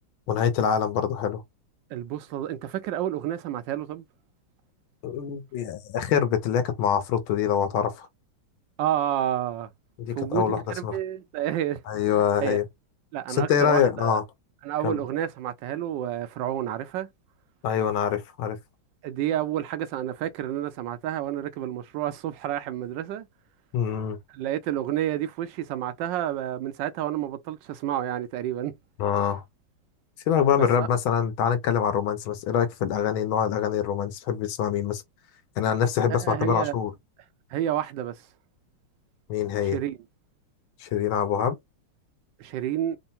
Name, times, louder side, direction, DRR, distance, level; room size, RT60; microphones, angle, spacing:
voice 1, 0.3-1.4 5.0-8.1 10.0-11.0 11.9-12.6 13.3-14.2 14.8-15.0 17.6-18.6 23.7-24.2 29.0-29.4 30.3-35.0 35.6-36.9 39.3-39.8 40.8-41.6, left 8 dB, 75° left, 1.5 m, -25 dB
voice 2, 1.9-4.1 8.8-9.7 10.2-11.8 12.1-12.6 13.1-14.2 14.6-17.1 19.0-23.3 24.3-28.7 30.5-30.9 36.1-36.8 37.5-38.2 39.6-40.0 42.4-43.0, right 11 dB, 75° right, 1.2 m, -30 dB
3.7 x 2.1 x 4.1 m
omnidirectional pair, 2.3 m